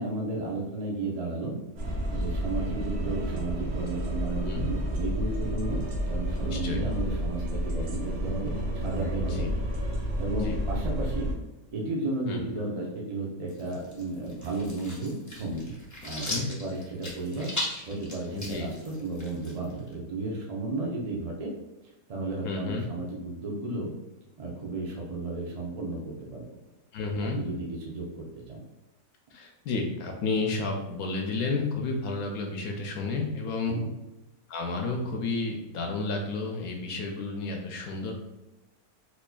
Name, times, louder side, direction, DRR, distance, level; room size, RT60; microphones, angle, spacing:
voice 1, 0.0-1.6 2.1-9.5 9.8-11.3 11.7-15.7 16.0-17.5 17.9-21.5 22.1-23.9 24.4-26.0 26.3-26.4 27.3-28.6 33.7-33.9, right 2 dB, 45° right, -3 dB, 0.5 m, -33 dB
sound 1, 1.8-11.3, right 1 dB, 80° right, 1.2 m, -30 dB
voice 2, 4.3-4.7 6.5-6.8 9.3-9.5 10.3-10.6 12.3-12.4 16.3-16.5 18.3-18.7 22.4-22.8 26.9-27.4 29.3-33.8 34.5-38.1, left 3 dB, 75° left, 2 dB, 1.0 m, -31 dB
sound 2, 13.5-19.9, left 1 dB, 25° left, 0.3 m, -38 dB
4.2 x 2.9 x 2.2 m, 1.0 s
omnidirectional pair, 1.6 m